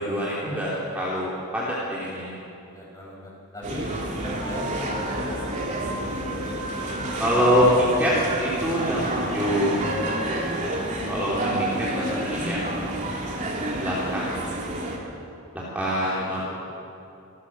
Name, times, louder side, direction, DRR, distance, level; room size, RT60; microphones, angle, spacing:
voice 1, 0.0-2.3 7.2-8.1 8.4-9.7 11.1-12.6 13.8-14.3 15.7-16.5, equal, 5° right, -7 dB, 3.0 m, -25 dB
voice 2, 2.7-3.9 4.2-5.6 16.0-16.5, equal, 15° left, -4 dB, 6.4 m, -38 dB
sound 1, 3.6-15.0, right 1 dB, 35° right, 2.8 m, -29 dB
26.5 x 14.5 x 7.4 m, 2.8 s
head